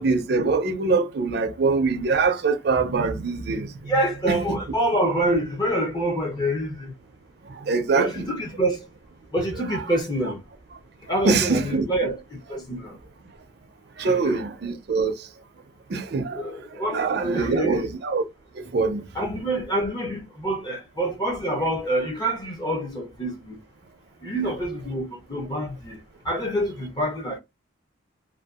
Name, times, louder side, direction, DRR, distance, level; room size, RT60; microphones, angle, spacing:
voice 1, 0.0-3.7 4.3-4.6 7.5-8.3 11.2-11.8 14.0-15.1 15.9-16.5 16.9-18.2 18.6-19.0, right 4 dB, 55° right, 0.4 m, -23 dB
voice 2, 3.9-6.9 7.9-8.8 9.3-10.4 11.1-12.2 12.5-13.0 14.0-14.4 16.3-17.9 19.1-23.6 24.2-26.0 26.3-27.4, right 1 dB, 20° left, 0.5 m, -26 dB
2.6 x 2.2 x 2.3 m
head